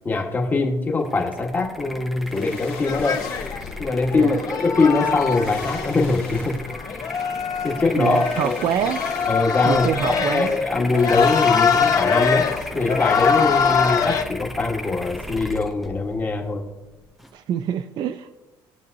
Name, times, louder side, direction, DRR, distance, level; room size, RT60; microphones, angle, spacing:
voice 1, 0.0-3.2 3.8-6.6 7.6-8.6 9.3-12.5 12.7-16.7, left 3 dB, 20° left, 2 dB, 1.3 m, -22 dB
sound 1, 1.0-17.3, equal, ahead, 0.6 m, -37 dB
sound 2, 2.2-3.7 4.8-4.9 5.2-6.8 7.9-9.6 10.0-10.1 10.9-12.5 12.8-12.9, left 7 dB, 80° left, 1.5 m, -39 dB
sound 3, 2.8-14.2, left 6 dB, 40° left, 0.8 m, -23 dB
voice 2, 8.0-9.0 9.7-10.5 17.3-18.3, right 8 dB, 50° right, 9 dB, 0.5 m, -25 dB
20.0 x 6.9 x 2.7 m, 1.1 s
cardioid pair, 160°, 9 cm